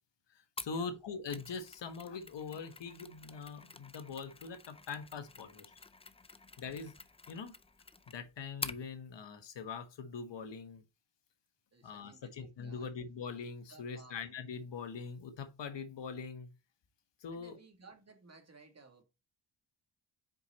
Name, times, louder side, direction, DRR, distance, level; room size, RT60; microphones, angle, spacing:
voice 1, 0.3-5.6 6.6-6.9 7.3-7.5 8.1-10.8 11.8-16.5 17.2-17.6, left 5 dB, 60° left, 1.4 m, -43 dB
Mechanisms, 0.6-8.9, left 3 dB, 15° left, 0.5 m, -48 dB
voice 2, 11.7-12.9 13.7-14.2 17.3-19.0, right 4 dB, 30° right, 1.9 m, -58 dB
5.3 x 4.7 x 4.1 m
cardioid pair, 70°, 48 cm